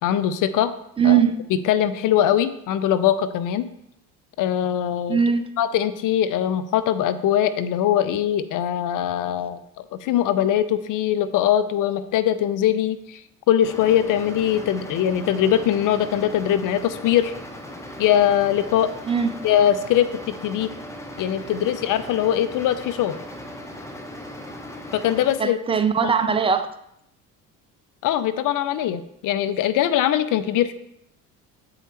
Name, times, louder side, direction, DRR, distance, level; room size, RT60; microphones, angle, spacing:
voice 1, 0.0-0.7 1.0-1.2 1.7-3.7 4.4-5.2 5.6-13.2 13.5-17.3 18.0-18.9 19.4-20.7 21.2-23.1 24.9-25.6 26.0-26.1 28.0-30.7, left 10 dB, 45° left, 12 dB, 0.5 m, -21 dB
voice 2, 1.0-1.4 5.1-5.5 19.0-19.4 25.4-26.7, right 7 dB, 15° right, 10 dB, 0.3 m, -20 dB
sound 1, 13.6-25.4, left 1 dB, 5° left, 0.9 m, -38 dB
7.7 x 4.8 x 3.1 m, 0.79 s
hypercardioid pair, 60°, 46 cm